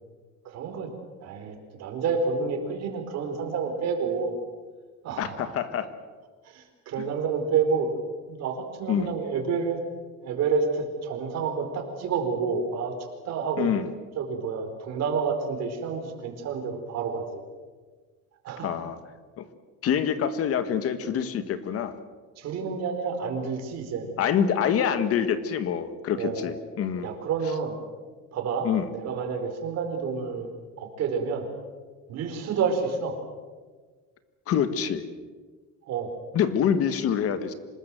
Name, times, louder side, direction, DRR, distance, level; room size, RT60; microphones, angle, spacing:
voice 1, 0.4-0.9 1.2-4.4 5.0-5.6 6.4-7.9 8.3-9.8 10.2-12.9 13.2-13.7 14.2-17.4 18.4-18.7 22.4-24.1 26.2-26.5 27.0-27.7 28.3-30.5 30.8-31.5 32.1-33.2 35.9-36.1, right 5 dB, 55° right, 4 dB, 4.6 m, -29 dB
voice 2, 5.2-5.9 8.9-9.1 13.6-13.8 18.6-19.0 19.4-19.5 19.8-21.9 24.2-27.1 28.6-28.9 34.5-35.0 36.3-37.5, left 8 dB, 50° left, 11 dB, 1.6 m, -26 dB
26.0 x 20.5 x 7.8 m, 1.4 s
cardioid pair, 170°, 31 cm